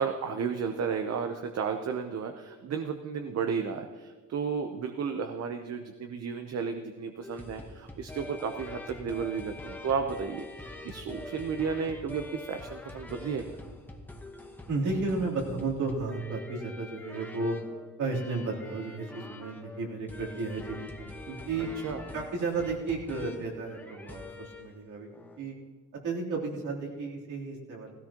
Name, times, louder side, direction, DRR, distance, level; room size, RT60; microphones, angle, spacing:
voice 1, 0.0-13.4 21.8-22.0, right 6 dB, 55° right, 6 dB, 0.9 m, -33 dB
sound 1, 7.2-24.8 25.1-25.4, left 2 dB, 5° left, 1.1 m, -45 dB
voice 2, 14.7-17.6 18.0-21.7 22.1-25.1 25.4-25.5 26.0-27.9, right 3 dB, 80° right, -3 dB, 3.4 m, -33 dB
17.0 x 16.5 x 3.0 m, 1.5 s
cardioid pair, 140°, 30 cm